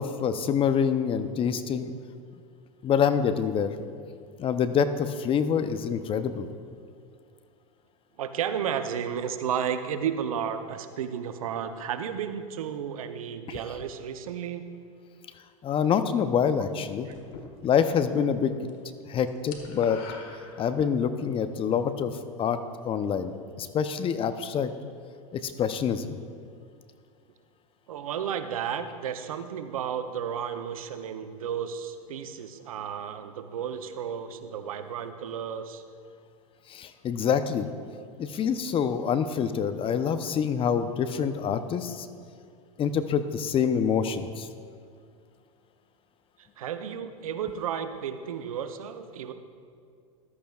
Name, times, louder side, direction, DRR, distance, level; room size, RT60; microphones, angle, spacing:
voice 1, 0.0-1.9 2.8-3.7 4.4-6.5 13.5-13.6 15.6-17.1 17.6-18.5 19.1-20.0 20.6-22.6 22.8-24.7 25.3-26.2 36.7-37.7 38.2-42.1 42.8-44.5, left 7 dB, 30° left, 10 dB, 0.7 m, -26 dB
voice 2, 8.2-14.6 17.1-17.2 27.9-35.8 46.6-49.3, right 8 dB, 80° right, 9 dB, 0.7 m, -33 dB
sound 1, 17.1-18.1 18.4-18.7 19.0-21.1, left 5 dB, 55° left, 1.6 m, -44 dB
14.5 x 12.5 x 2.4 m, 2.2 s
hypercardioid pair, 95°, 18 cm